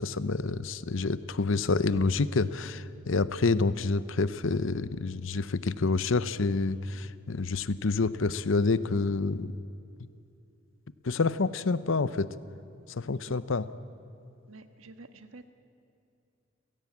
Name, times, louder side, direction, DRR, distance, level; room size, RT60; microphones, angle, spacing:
voice 1, 0.0-9.5 11.0-12.3 12.9-13.7, left 3 dB, 65° left, 15 dB, 0.7 m, -28 dB
voice 2, 14.5-15.5, right 3 dB, 80° right, 8 dB, 1.5 m, -50 dB
30.0 x 16.5 x 8.5 m, 2.7 s
head